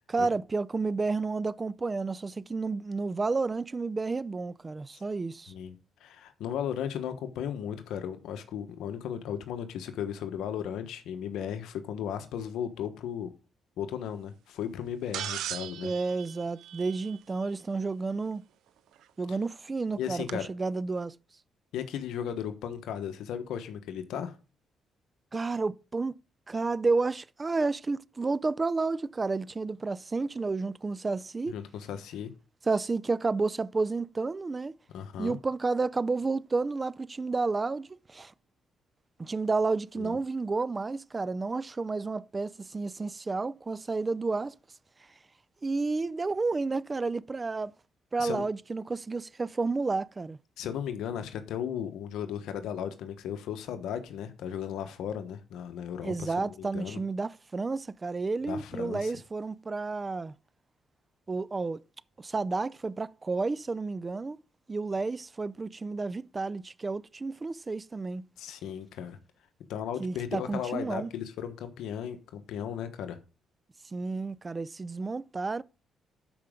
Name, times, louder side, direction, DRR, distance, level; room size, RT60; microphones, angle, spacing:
voice 1, 0.1-5.5 15.8-18.4 19.2-21.1 25.3-26.1 26.5-31.5 32.7-34.7 35.2-38.3 39.2-44.5 45.6-47.7 48.1-50.4 56.0-60.3 61.3-61.8 62.2-64.4 64.7-68.2 70.0-71.1 73.9-75.6, right 3 dB, 25° right, 0.4 m, -31 dB
voice 2, 5.5-13.3 13.8-15.9 20.0-20.5 21.7-24.3 31.5-32.3 34.9-35.4 40.0-40.2 48.2-48.4 50.6-57.0 58.5-59.1 68.4-69.2 69.7-73.2, left 9 dB, 85° left, 1.2 m, -36 dB
sound 1, 15.1-17.4 19.0-19.1 20.3-20.4, right 11 dB, 80° right, 0.6 m, -38 dB
12.0 x 5.1 x 3.7 m
cardioid pair, 90°, 0 cm